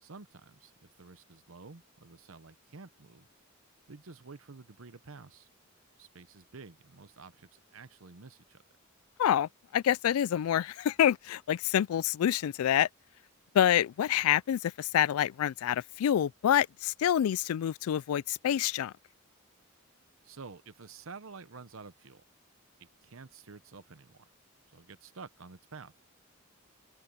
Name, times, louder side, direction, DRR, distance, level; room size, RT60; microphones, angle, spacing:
voice 1, 0.0-3.3 3.9-5.5 6.0-8.6 20.2-22.2 22.8-24.2 24.7-25.9, right 4 dB, 75° right, 0.9 m, -50 dB
voice 2, 9.2-12.9 13.5-18.9, left 10 dB, 90° left, 0.3 m, -27 dB
open air
head